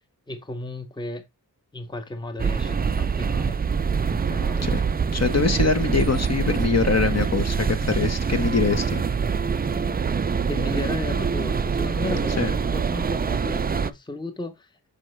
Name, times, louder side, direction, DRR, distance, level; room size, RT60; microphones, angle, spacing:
voice 1, 0.3-1.2 1.7-3.6 4.1-4.7 10.5-14.9, left 2 dB, 10° left, 0.8 m, -34 dB
sound 1, 2.4-13.9, right 6 dB, 25° right, 0.4 m, -25 dB
voice 2, 5.1-9.0 12.4-12.5, left 4 dB, 40° left, 1.0 m, -23 dB
6.6 x 5.2 x 3.1 m
wide cardioid pair, 95°, 39 cm